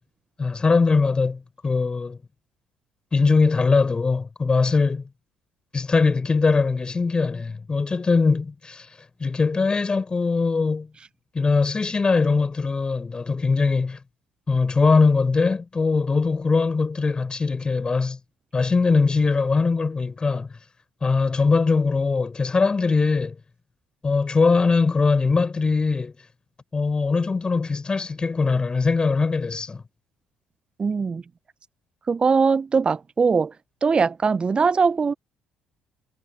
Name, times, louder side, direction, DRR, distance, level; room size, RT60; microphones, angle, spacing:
voice 1, 0.4-2.2 3.1-5.0 5.7-8.9 9.2-10.9 11.3-14.0 14.5-18.2 18.5-20.5 21.0-23.4 24.0-26.1 26.7-29.8, left 4 dB, 30° left, 6.4 m, -21 dB
voice 2, 30.8-31.2 32.1-33.5 33.8-35.1, right 5 dB, 30° right, 1.1 m, -21 dB
figure-of-eight pair, 50°, 3 cm